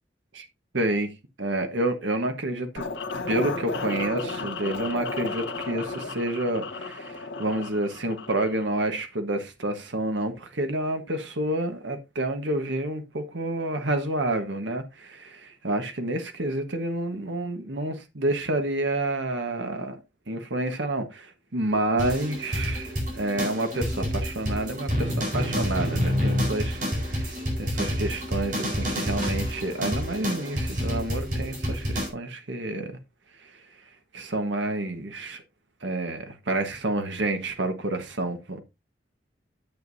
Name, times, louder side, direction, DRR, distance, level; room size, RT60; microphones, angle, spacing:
voice 1, 0.7-1.1 1.4-2.8 3.3-20.0 20.3-33.0 33.4-33.6 34.1-35.4 35.8-38.6, right 1 dB, 80° right, 1.4 m, -29 dB
sound 1, 2.8-8.7, left 3 dB, 80° left, 1.6 m, -33 dB
sound 2, 22.0-32.1, equal, 45° right, 4.5 m, -28 dB
10.0 x 8.1 x 2.7 m
head